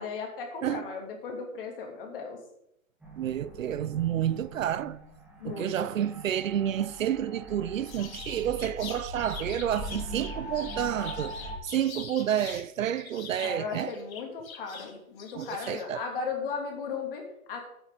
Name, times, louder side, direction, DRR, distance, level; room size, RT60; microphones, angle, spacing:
voice 1, 0.0-2.4 5.4-6.0 13.4-17.6, left 5 dB, 40° left, 2.9 m, -36 dB
sound 1, 3.0-11.5, right 1 dB, ahead, 1.1 m, -41 dB
voice 2, 3.2-5.0 5.4-11.4 11.6-13.9 15.3-16.0, right 10 dB, 65° right, 0.6 m, -30 dB
sound 2, 7.9-12.7 13.0-15.8, left 6 dB, 70° left, 2.0 m, -44 dB
13.0 x 8.9 x 3.9 m
hypercardioid pair, 170°, 43 cm